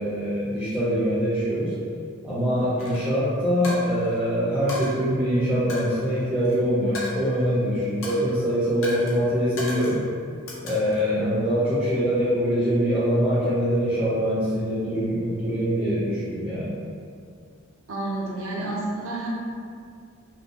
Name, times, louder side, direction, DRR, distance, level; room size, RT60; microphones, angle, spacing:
voice 1, 0.0-1.7 2.2-10.0 10.6-16.8, equal, 5° right, -11 dB, 0.5 m, -24 dB
Coin (dropping), 2.8-3.0 3.6-4.2 4.7-4.9 5.7-6.5 6.9-7.6 8.0-8.3 8.8-9.1 9.6-10.0 10.5-11.1, left 1 dB, 75° left, 0.6 m, -36 dB
voice 2, 17.9-19.3, right 2 dB, 70° right, -4 dB, 0.5 m, -30 dB
2.5 x 2.1 x 2.7 m, 2.2 s
head